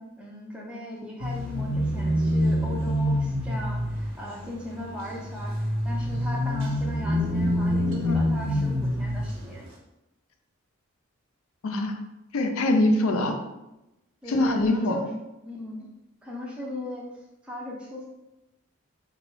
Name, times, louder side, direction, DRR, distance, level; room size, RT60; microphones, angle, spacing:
voice 1, 0.2-9.7 14.2-15.1 15.4-15.9 16.2-18.0, left 1 dB, 5° right, -3 dB, 0.5 m, -38 dB
sound 1, 1.2-9.6, equal, 75° right, 0.7 m, -27 dB
voice 2, 11.6-12.0 12.3-13.4 14.3-15.0, left 1 dB, 80° left, 5 dB, 0.5 m, -23 dB
4.0 x 2.2 x 3.1 m, 0.93 s
head